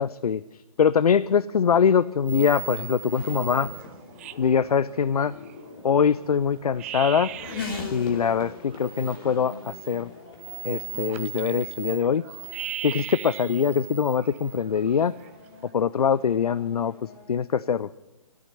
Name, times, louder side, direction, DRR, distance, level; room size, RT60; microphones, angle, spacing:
voice 1, 0.0-3.7 4.4-5.3 5.8-7.3 7.9-10.1 10.6-12.2 12.8-15.1 15.7-17.9, left 7 dB, 85° left, 18 dB, 0.5 m, -23 dB
Race car auto racing / Accelerating revving vroom, 1.5-17.4, left 4 dB, 40° left, 2.7 m, -43 dB
sound 1, 1.6-2.0 2.2-5.8 6.2-6.3 6.6-7.9 8.3-15.7, right 12 dB, 25° right, 0.4 m, -39 dB
14.0 x 8.7 x 9.5 m, 1.0 s
hypercardioid pair, 150°, 19 cm